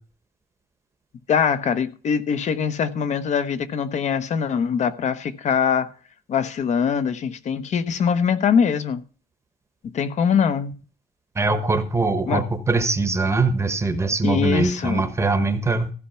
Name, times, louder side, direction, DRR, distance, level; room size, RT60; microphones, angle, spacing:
voice 1, 1.3-5.9 6.3-9.0 9.9-10.7 12.3-12.4 14.2-15.0, left 7 dB, 45° left, 1.0 m, -22 dB
voice 2, 11.4-15.9, right 3 dB, 15° right, 1.1 m, -22 dB
15.0 x 5.8 x 5.7 m
cardioid pair, 175°, 16 cm